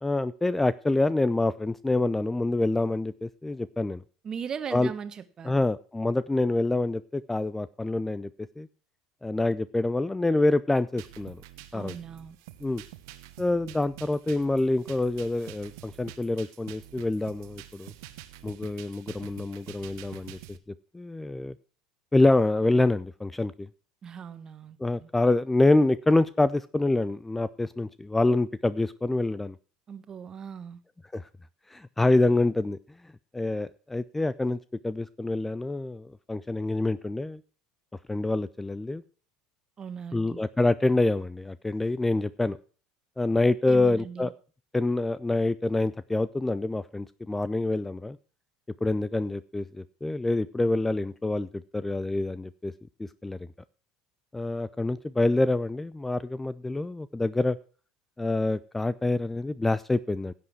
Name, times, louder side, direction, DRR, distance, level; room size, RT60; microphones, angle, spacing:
voice 1, 0.0-4.0 4.7-4.9 5.5-8.3 8.6-8.7 9.2-11.4 11.7-11.9 12.6-12.8 13.4-17.9 18.4-20.6 20.9-21.6 22.1-23.7 24.8-29.5 31.1-31.3 31.7-32.8 33.3-34.6 34.8-37.4 38.1-39.0 40.1-42.6 43.2-44.3 44.7-48.2 48.8-52.7 53.0-53.4 54.3-57.6 58.2-60.3, left 2 dB, 10° left, 0.5 m, -26 dB
voice 2, 4.2-5.6 11.7-12.4 24.0-25.1 29.9-30.8 39.8-40.4 43.7-44.3, right 7 dB, 30° right, 1.4 m, -39 dB
sound 1, 11.0-20.6, right 14 dB, 60° right, 1.2 m, -47 dB
16.5 x 7.9 x 4.7 m
figure-of-eight pair, 70°, 2 cm